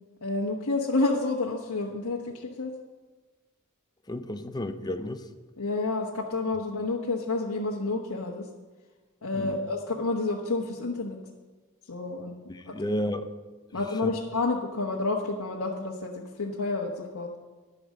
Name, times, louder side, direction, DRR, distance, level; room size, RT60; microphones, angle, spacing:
voice 1, 0.2-2.7 5.6-8.5 9.2-11.2 11.9-12.3 12.7-12.8 13.7-17.3, left 3 dB, 85° left, -2 dB, 1.1 m, -29 dB
voice 2, 4.1-5.2 9.3-9.6 12.5-13.3 14.0-14.1, left 1 dB, 20° left, 9 dB, 0.6 m, -32 dB
11.0 x 8.7 x 6.4 m, 1.3 s
head